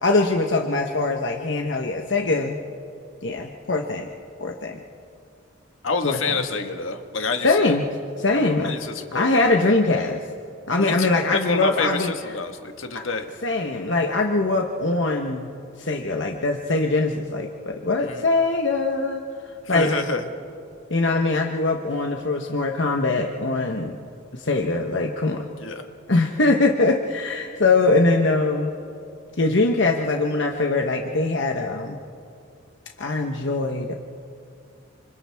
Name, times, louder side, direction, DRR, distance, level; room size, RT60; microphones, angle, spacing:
voice 1, 0.0-2.6 3.2-4.1 4.4-4.8 6.0-6.4 7.4-7.9 8.2-8.7 9.1-10.2 10.7-12.1 12.9-13.0 13.4-20.0 20.9-24.0 24.3-25.5 26.1-28.7 29.4-32.0 33.0-33.9, left 3 dB, 65° left, 2 dB, 1.1 m, -22 dB
voice 2, 5.8-7.8 8.6-9.7 10.8-13.3 18.0-18.2 19.7-20.2 25.5-25.9, left 4 dB, 80° left, 6 dB, 1.6 m, -28 dB
29.0 x 27.5 x 3.5 m, 2.4 s
head